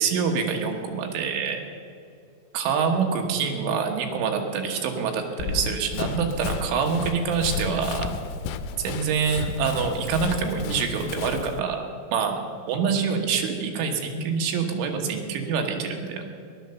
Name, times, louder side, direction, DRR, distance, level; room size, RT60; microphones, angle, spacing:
voice 1, 0.0-1.6 2.5-8.1 8.8-11.8 12.1-12.4 12.7-16.3, right 6 dB, 75° right, 3 dB, 3.7 m, -26 dB
Run, 5.4-11.6, left 6 dB, 85° left, 3.1 m, -33 dB
15.0 x 12.0 x 6.9 m, 2.4 s
omnidirectional pair, 5.7 m